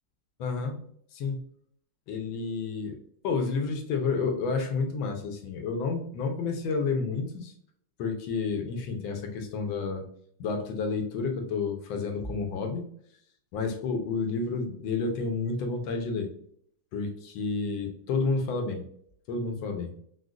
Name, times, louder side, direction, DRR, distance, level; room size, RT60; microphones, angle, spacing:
voice 1, 0.4-0.8 1.1-1.4 2.1-3.0 3.2-7.5 8.0-10.0 10.4-12.8 13.5-16.3 16.9-18.8 19.3-19.9, left 4 dB, 85° left, 4 dB, 1.5 m, -30 dB
5.0 x 2.1 x 2.4 m, 0.63 s
omnidirectional pair, 2.1 m